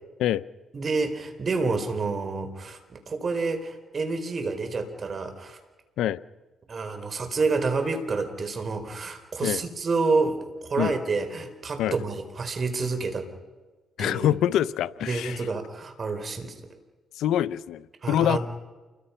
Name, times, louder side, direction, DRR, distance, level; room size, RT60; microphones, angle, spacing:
voice 1, 0.7-5.6 6.7-13.3 14.0-14.4 15.1-16.5 18.0-18.4, right 4 dB, 40° right, 4.2 m, -28 dB
voice 2, 14.0-15.4 17.1-18.4, left 11 dB, 85° left, 0.7 m, -25 dB
29.0 x 23.0 x 5.8 m
cardioid pair, 90°, 0 cm